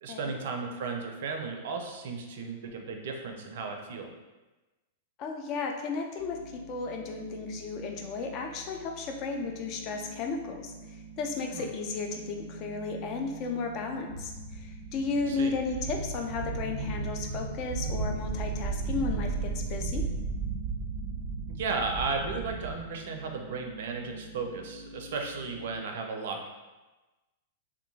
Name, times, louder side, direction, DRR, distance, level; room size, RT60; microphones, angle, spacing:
voice 1, 0.0-4.1 11.5-11.7 15.3-15.5 21.5-26.5, right 4 dB, 65° right, 3 dB, 0.4 m, -35 dB
voice 2, 5.2-10.7 11.2-20.0, left 4 dB, 40° left, 3 dB, 0.4 m, -34 dB
sound 1, 6.2-25.8, right 3 dB, 90° left, 1.1 m, -48 dB
sound 2, 14.1-22.8, right 4 dB, 5° left, 1.4 m, -34 dB
2.6 x 2.5 x 2.7 m, 1.1 s
hypercardioid pair, 105°, 0 cm